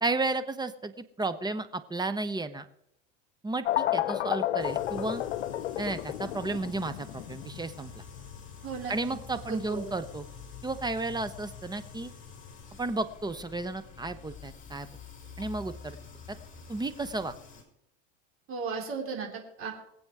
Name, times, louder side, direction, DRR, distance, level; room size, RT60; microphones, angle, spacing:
voice 1, 0.0-2.7 3.4-5.2 5.8-8.0 8.9-10.2 10.6-12.1 12.8-14.9 15.4-16.0 16.3-16.4 16.7-17.3, right 3 dB, 10° right, 11 dB, 0.8 m, -33 dB
sound 1, 3.6-12.1, left 13 dB, 90° left, 0.8 m, -33 dB
sound 2, 4.6-17.6, left 5 dB, 25° left, 4.8 m, -47 dB
voice 2, 8.6-9.2 9.5-9.9 18.5-19.7, right 5 dB, 40° right, 1 dB, 4.0 m, -36 dB
21.5 x 7.9 x 4.8 m, 0.77 s
hypercardioid pair, 100°, 33 cm